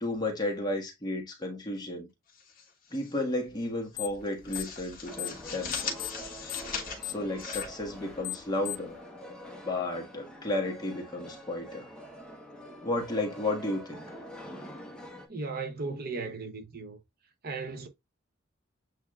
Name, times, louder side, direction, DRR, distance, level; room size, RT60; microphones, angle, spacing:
voice 1, 0.0-2.1 2.9-6.2 7.0-9.0 9.6-11.9 12.8-14.0, left 2 dB, 20° left, 1.4 m, -33 dB
sound 1, 2.3-3.2 3.5-3.7 4.1-8.6, left 5 dB, 45° left, 1.5 m, -40 dB
sound 2, 3.9-4.2 4.5-5.4 5.7-9.0, left 18 dB, 65° left, 0.5 m, -37 dB
sound 3, 5.0-15.3, equal, 5° left, 0.9 m, -46 dB
voice 2, 15.3-17.0 17.4-17.9, right 4 dB, 45° right, 0.8 m, -36 dB
8.1 x 2.7 x 2.3 m
head